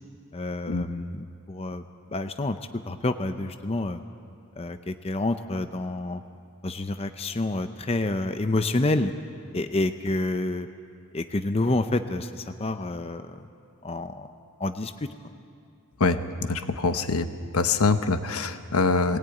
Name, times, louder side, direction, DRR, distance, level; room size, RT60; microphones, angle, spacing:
voice 1, 0.3-1.8 2.1-2.6 2.9-4.0 4.6-6.2 6.6-9.1 9.5-10.7 11.1-13.5 13.8-14.3 14.6-15.1, left 2 dB, 25° left, 8 dB, 0.6 m, -28 dB
voice 2, 16.0-17.3 17.5-19.2, left 3 dB, 80° left, 9 dB, 1.0 m, -24 dB
20.0 x 17.5 x 9.2 m, 2.4 s
head